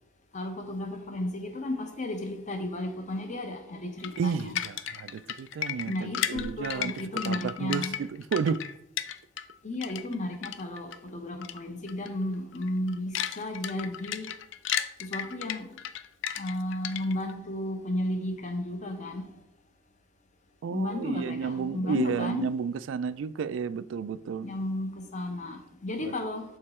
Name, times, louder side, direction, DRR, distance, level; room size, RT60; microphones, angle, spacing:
voice 1, 0.3-4.6 5.9-8.0 9.6-14.3 15.0-15.7 16.4-19.3 20.7-22.5 24.4-26.4, left 1 dB, 35° left, 0.8 m, -33 dB
sound 1, 4.0-9.5 9.8-11.0 11.4-11.6 11.9-12.1 12.5-17.3, left 9 dB, 65° left, 0.4 m, -34 dB
voice 2, 4.2-6.9 7.2-8.6 20.6-24.5 26.0-26.2, right 6 dB, 70° right, 0.3 m, -31 dB
6.5 x 3.8 x 4.3 m
head